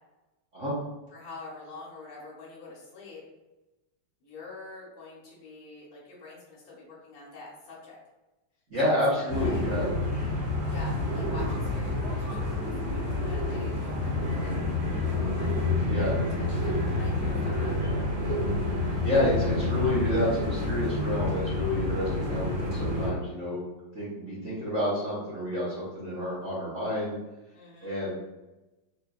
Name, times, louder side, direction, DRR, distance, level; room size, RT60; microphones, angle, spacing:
voice 1, 1.1-3.2 4.2-8.0 8.8-9.6 10.7-14.6 15.3-17.8 27.5-27.9, left 3 dB, 65° left, -5 dB, 1.7 m, -46 dB
voice 2, 8.7-9.9 15.8-16.1 19.0-23.7 23.9-27.1 27.8-28.1, left 1 dB, 45° right, -10 dB, 1.1 m, -29 dB
sound 1, 9.3-23.1, left 2 dB, 65° right, 2.1 m, -29 dB
4.3 x 2.7 x 2.4 m, 1.0 s
omnidirectional pair, 2.4 m